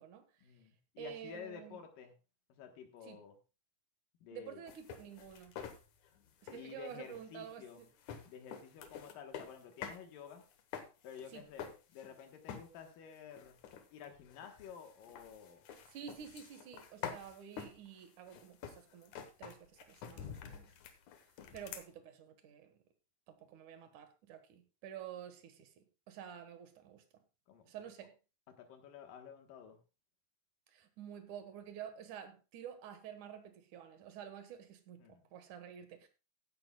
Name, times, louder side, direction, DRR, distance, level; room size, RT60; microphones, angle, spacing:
voice 1, 0.4-2.1 2.5-3.4 4.2-4.6 6.5-7.8 8.3-10.4 11.0-13.6 13.9-15.6 27.5-27.9 28.6-29.8 35.0-35.2, left 7 dB, 85° left, 3.1 m, -51 dB
voice 2, 1.0-1.8 3.0-3.2 4.3-5.6 6.4-7.9 11.3-11.5 15.7-20.7 21.5-22.8 23.3-27.0 27.7-28.1 30.7-36.1, right 9 dB, 70° right, 2.9 m, -50 dB
sound 1, 4.7-10.0 10.3-12.2 12.5-12.9 13.3-21.9, left 8 dB, 70° left, 2.6 m, -48 dB
15.0 x 11.5 x 2.3 m
omnidirectional pair, 3.8 m